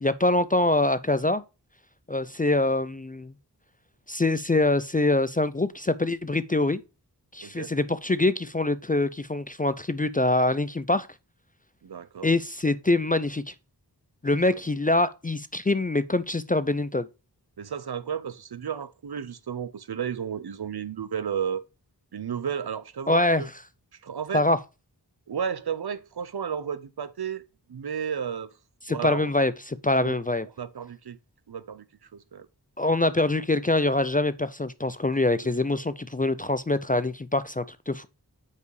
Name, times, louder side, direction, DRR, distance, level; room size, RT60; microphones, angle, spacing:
voice 1, 0.0-1.4 2.1-3.3 4.1-6.8 7.3-11.1 12.2-13.5 14.2-17.1 23.1-23.4 24.3-24.6 28.9-30.5 32.8-38.1, left 2 dB, 20° left, 0.3 m, -24 dB
voice 2, 11.8-12.3 17.6-21.6 22.1-23.5 24.0-24.4 25.3-27.4 27.7-28.5 28.9-29.3 30.0-30.1 30.6-31.2 31.5-31.9 32.1-32.5 35.4-35.8, right 7 dB, 65° right, 0.6 m, -33 dB
5.4 x 4.9 x 4.6 m
wide cardioid pair, 45°, 41 cm